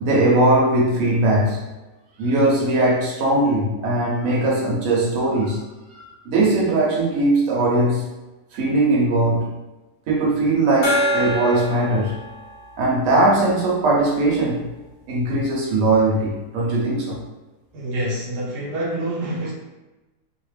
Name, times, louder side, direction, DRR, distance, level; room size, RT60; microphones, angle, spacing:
voice 1, 0.0-1.6 2.2-5.6 5.9-8.1 8.5-9.5 10.1-12.1 12.8-14.6 15.1-17.2, right 2 dB, 60° right, -3 dB, 1.0 m, -19 dB
Gong, 10.8-14.1, equal, 55° left, 0.6 m, -27 dB
voice 2, 17.7-19.5, right 1 dB, 85° right, -4 dB, 1.3 m, -26 dB
2.8 x 2.0 x 3.2 m, 1.1 s
omnidirectional pair, 1.7 m